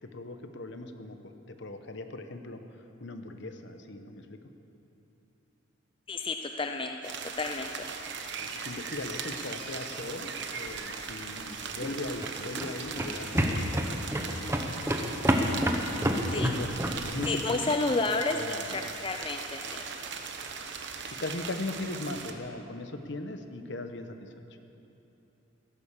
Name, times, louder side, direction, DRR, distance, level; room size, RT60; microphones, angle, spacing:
voice 1, 0.0-2.6 3.0-4.4 8.4-14.7 15.0-17.8 18.3-18.8 21.0-24.3, left 2 dB, 60° left, 7 dB, 1.1 m, -39 dB
voice 2, 6.1-7.7 16.3-16.5 17.3-19.8, left 3 dB, 25° left, 5 dB, 0.5 m, -31 dB
sound 1, 7.0-22.3, right 5 dB, 60° right, 1.1 m, -39 dB
sound 2, 11.8-17.3, equal, 15° right, 1.0 m, -29 dB
16.0 x 11.5 x 7.3 m, 3.0 s
head